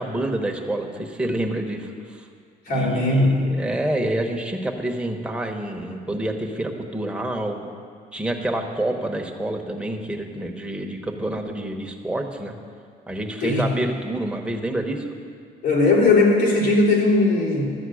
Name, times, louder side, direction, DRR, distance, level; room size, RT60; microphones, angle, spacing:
voice 1, 0.0-2.3 2.7-7.7 8.1-12.6 13.1-15.1, right 1 dB, 5° right, 1 dB, 1.1 m, -28 dB
voice 2, 2.7-3.5 13.4-13.7 15.6-17.6, left 2 dB, 85° left, -6 dB, 3.6 m, -18 dB
12.5 x 7.8 x 6.3 m, 2.2 s
cardioid pair, 110°, 17 cm